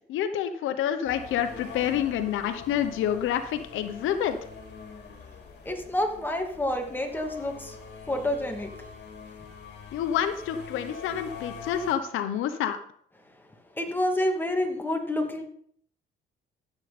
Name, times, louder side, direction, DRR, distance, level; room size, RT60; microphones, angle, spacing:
voice 1, 0.1-4.4 9.9-12.8, left 10 dB, 90° left, 10 dB, 1.0 m, -28 dB
sound 1, 1.0-11.9, left 4 dB, 60° left, 2.9 m, -44 dB
voice 2, 5.6-7.8 8.1-8.7 13.7-15.4, left 1 dB, 10° left, 2 dB, 2.5 m, -28 dB
14.5 x 8.1 x 4.3 m, 0.63 s
cardioid pair, 90°, 20 cm